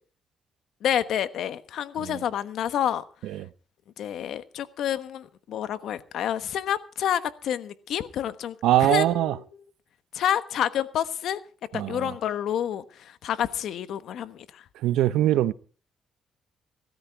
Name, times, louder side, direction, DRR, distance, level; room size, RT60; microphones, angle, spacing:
voice 1, 0.8-3.0 4.0-8.5 8.8-9.6 10.1-11.4 11.7-14.6, left 10 dB, 75° left, 1.2 m, -29 dB
voice 2, 8.6-9.3 11.7-12.0 14.8-15.5, right 13 dB, 90° right, 0.7 m, -22 dB
17.0 x 13.5 x 4.7 m
cardioid pair, 90°, 0 cm